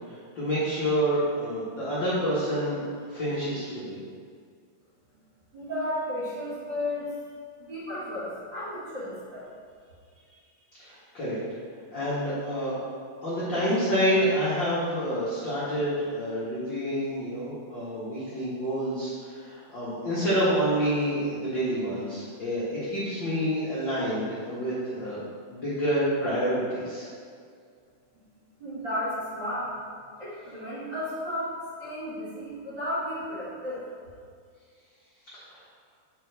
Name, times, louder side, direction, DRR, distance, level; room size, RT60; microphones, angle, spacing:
voice 1, 0.3-4.0 10.8-11.4 11.9-12.7 13.2-25.2 25.5-27.1 35.5-35.6, equal, 55° left, -10 dB, 1.3 m, -28 dB
voice 2, 5.5-7.1 7.6-9.5 28.6-29.8 30.2-33.8, left 1 dB, 40° right, -12 dB, 2.0 m, -33 dB
7.9 x 5.3 x 3.4 m, 2.1 s
omnidirectional pair, 4.3 m